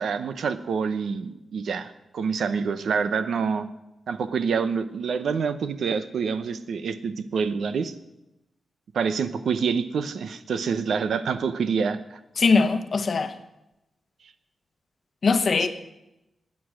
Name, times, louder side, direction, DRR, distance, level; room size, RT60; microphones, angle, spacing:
voice 1, 0.0-3.7 4.1-7.9 8.9-12.2 15.6-15.7, right 6 dB, 80° right, 0.8 m, -27 dB
voice 2, 12.4-13.3 15.2-15.7, left 4 dB, 45° left, 1.0 m, -21 dB
20.0 x 8.6 x 6.3 m
wide cardioid pair, 145°, 0 cm